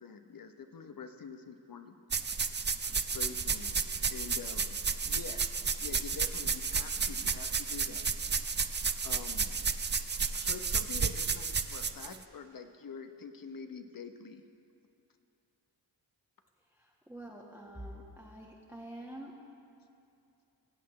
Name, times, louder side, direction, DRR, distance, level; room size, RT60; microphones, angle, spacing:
voice 1, 0.0-2.6 3.0-3.8 4.1-5.5 5.8-8.1 9.0-9.6 10.3-14.4, left 5 dB, 50° left, 7 dB, 0.9 m, -46 dB
sound 1, 2.1-12.2, right 5 dB, 25° right, 0.5 m, -32 dB
voice 2, 16.7-19.3, right 1 dB, 5° right, -3 dB, 1.4 m, -47 dB
21.0 x 8.2 x 3.2 m, 2.6 s
cardioid pair, 60°, 43 cm